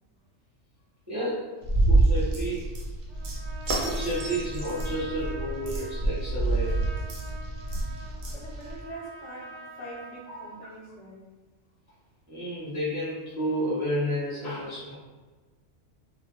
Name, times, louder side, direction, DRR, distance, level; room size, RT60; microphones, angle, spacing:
voice 1, 1.1-1.5 1.9-2.7 3.8-6.9 10.3-10.7 12.3-14.9, equal, 25° right, -10 dB, 0.4 m, -31 dB
sound 1, 1.6-8.8, right 2 dB, 70° right, 0.8 m, -27 dB
Trumpet, 3.1-10.7, right 2 dB, 45° right, 0.8 m, -46 dB
voice 2, 8.3-11.3, right 1 dB, 75° left, -3 dB, 1.0 m, -43 dB
2.3 x 2.1 x 2.8 m, 1.3 s
omnidirectional pair, 1.2 m